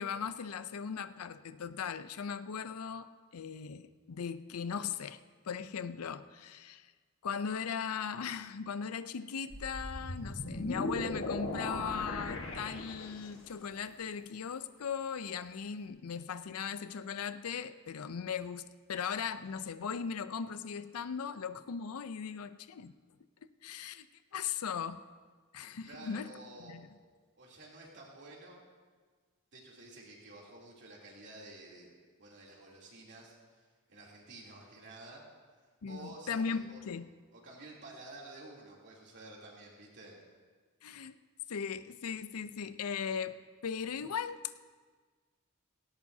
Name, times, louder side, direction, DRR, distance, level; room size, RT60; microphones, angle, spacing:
voice 1, 0.0-5.2 5.5-6.9 7.2-18.6 18.9-22.9 23.6-24.1 24.3-25.0 25.5-26.3 26.6-26.9 35.8-37.1 40.8-41.2 41.5-43.4 43.6-44.4, left 6 dB, 80° left, 13 dB, 0.5 m, -38 dB
sound 1, 9.5-13.5, left 2 dB, 60° left, 1.4 m, -38 dB
voice 2, 25.8-26.8 27.3-28.6 29.5-31.9 32.2-35.2 35.9-36.8 37.3-40.2, right 2 dB, 50° right, -3 dB, 3.0 m, -51 dB
18.0 x 17.0 x 2.7 m, 1.5 s
head